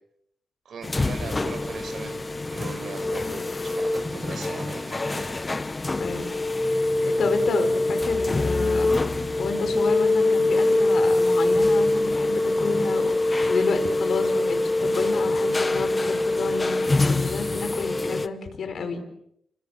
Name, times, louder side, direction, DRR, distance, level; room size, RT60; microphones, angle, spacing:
voice 1, 0.6-5.5, right 5 dB, 55° right, 6 dB, 6.5 m, -39 dB
sound 1, 0.8-18.3, left 2 dB, 20° left, 1.1 m, -24 dB
voice 2, 5.9-6.2 6.6-8.9 9.4-19.0, left 5 dB, 50° left, 8 dB, 5.3 m, -30 dB
sound 2, 10.5-17.1, left 1 dB, 5° left, 6.4 m, -46 dB
29.0 x 26.5 x 7.8 m, 0.77 s
wide cardioid pair, 160°, 0 cm